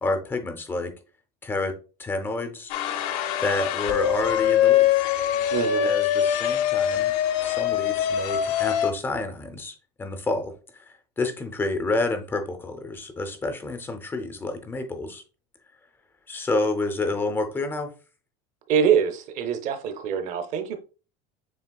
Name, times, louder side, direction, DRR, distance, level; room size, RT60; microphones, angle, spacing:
voice 1, 0.0-0.9 1.4-2.7 3.0-4.9 5.8-7.1 7.4-15.2 16.3-17.9, left 2 dB, 10° left, 0.5 m, -29 dB
sound 1, 2.7-8.9, left 10 dB, 80° left, 0.7 m, -23 dB
voice 2, 5.5-5.9 18.7-20.8, right 7 dB, 35° right, 0.7 m, -24 dB
7.2 x 3.2 x 2.2 m
cardioid pair, 175°, 21 cm